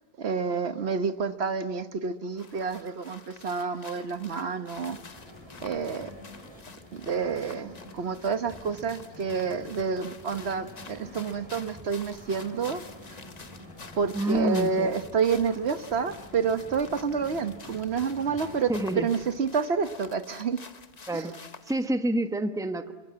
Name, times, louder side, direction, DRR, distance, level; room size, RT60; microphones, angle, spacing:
voice 1, 0.2-5.0 5.6-6.1 6.9-12.8 13.9-18.7 19.0-20.6 21.1-21.3, right 5 dB, 70° right, 10 dB, 1.3 m, -29 dB
sound 1, 2.4-21.9, left 4 dB, 40° left, 1.1 m, -49 dB
sound 2, 4.7-19.2, left 1 dB, 25° right, 7.1 m, -48 dB
voice 2, 14.1-14.9 18.7-19.1 21.1-21.3 21.7-22.9, right 1 dB, 5° right, 8 dB, 1.0 m, -28 dB
29.5 x 23.5 x 8.7 m, 1.2 s
omnidirectional pair, 1.1 m